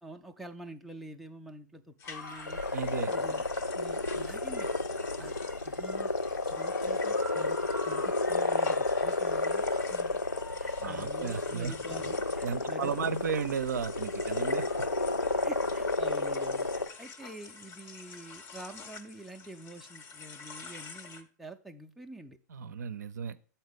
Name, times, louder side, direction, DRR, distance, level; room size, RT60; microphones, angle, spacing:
voice 1, 0.0-2.6 3.1-3.4 3.7-4.7 5.2-5.3 5.7-6.1 6.5-10.2 10.6-13.2 15.4-22.4, right 1 dB, ahead, 3 dB, 0.4 m, -47 dB
sound 1, 2.0-15.9, left 3 dB, 70° left, 1.3 m, -46 dB
sound 2, 2.0-21.2, left 4 dB, 25° left, 0.7 m, -48 dB
sound 3, 2.5-16.9, left 2 dB, 90° left, 0.5 m, -31 dB
voice 2, 2.7-3.1 10.8-11.7 12.4-14.9 22.5-23.4, right 6 dB, 65° right, 12 dB, 0.5 m, -34 dB
7.9 x 4.4 x 5.0 m, 0.40 s
figure-of-eight pair, 105°, 10 cm